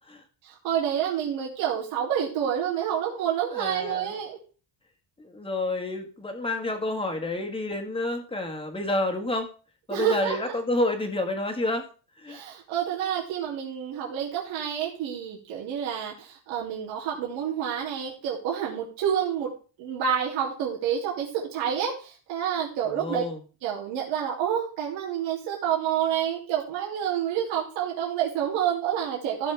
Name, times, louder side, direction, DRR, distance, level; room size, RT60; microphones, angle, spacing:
voice 1, 0.4-4.4 9.9-10.5 12.3-19.5 19.8-23.2 23.6-29.5, right 9 dB, 90° right, -4 dB, 2.9 m, -28 dB
voice 2, 3.5-4.1 5.2-9.5 9.9-11.8 12.2-12.4 22.9-23.4, left 2 dB, 10° left, 3 dB, 1.7 m, -29 dB
15.5 x 6.3 x 3.4 m, 0.37 s
cardioid pair, 145°, 46 cm